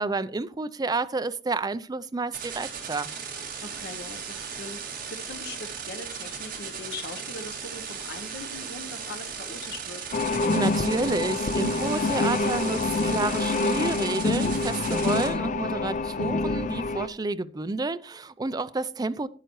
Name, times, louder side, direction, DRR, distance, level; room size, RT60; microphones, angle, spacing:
voice 1, 0.0-3.1 10.5-19.3, right 3 dB, 20° right, 0.4 m, -30 dB
sound 1, 2.3-15.3, right 6 dB, 50° right, 2.2 m, -37 dB
voice 2, 3.6-10.0, left 3 dB, 65° left, 0.8 m, -41 dB
sound 2, 10.1-17.1, left 3 dB, 45° left, 0.5 m, -26 dB
12.5 x 9.2 x 3.0 m
head